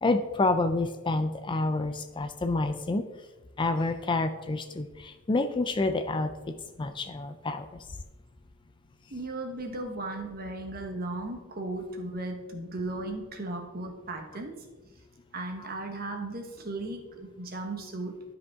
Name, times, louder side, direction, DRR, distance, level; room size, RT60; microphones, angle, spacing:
voice 1, 0.0-3.0 3.6-7.8, left 2 dB, 20° left, 9 dB, 0.4 m, -28 dB
voice 2, 9.1-14.6 15.3-18.2, right 2 dB, 45° right, 4 dB, 1.3 m, -36 dB
12.0 x 5.1 x 3.6 m, 1.2 s
head